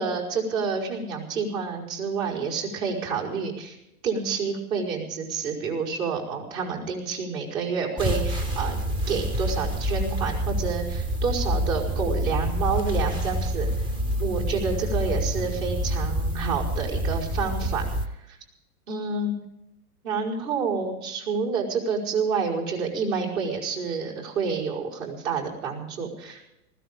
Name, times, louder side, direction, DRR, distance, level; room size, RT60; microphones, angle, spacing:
voice 1, 0.0-3.8 4.0-8.8 9.1-13.7 14.2-18.4 18.9-19.3 20.0-26.4, right 5 dB, 60° right, -1 dB, 5.4 m, -29 dB
sound 1, 8.0-18.1, equal, 10° right, 0.5 m, -27 dB
20.0 x 16.0 x 3.8 m, 0.89 s
hypercardioid pair, 125°, 46 cm